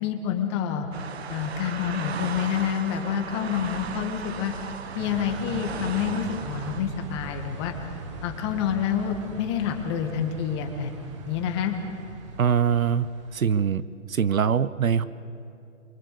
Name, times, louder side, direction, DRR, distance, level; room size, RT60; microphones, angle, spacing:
voice 1, 0.0-0.9 1.3-4.5 4.9-7.7 8.2-10.9 11.3-11.7, left 8 dB, 20° left, 4 dB, 1.6 m, -28 dB
sound 1, 0.9-6.8, right 6 dB, 50° right, 1.2 m, -36 dB
sound 2, 5.0-13.7, right 3 dB, 20° right, 1.2 m, -40 dB
voice 2, 12.4-15.1, right 7 dB, 80° right, 16 dB, 1.0 m, -23 dB
24.0 x 23.5 x 6.8 m, 2.6 s
hypercardioid pair, 160°, 41 cm